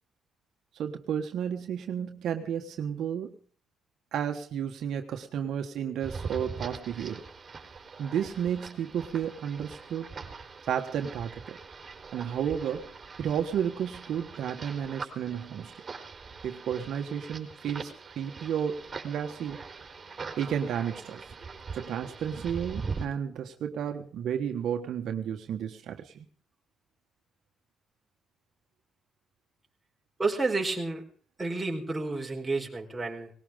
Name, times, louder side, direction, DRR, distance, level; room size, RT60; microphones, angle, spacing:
voice 1, 0.7-3.4 4.1-7.2 8.0-10.1 10.7-11.6 12.1-15.7 16.4-19.6 20.4-21.2 21.7-26.3, right 8 dB, 75° right, 5 dB, 1.5 m, -32 dB
sound 1, 6.0-23.1, right 4 dB, 35° right, 4.0 m, -42 dB
voice 2, 30.2-31.0 31.4-33.3, right 3 dB, 15° right, 0 dB, 4.5 m, -30 dB
19.5 x 18.5 x 3.8 m, 0.43 s
cardioid pair, 90°, 0 cm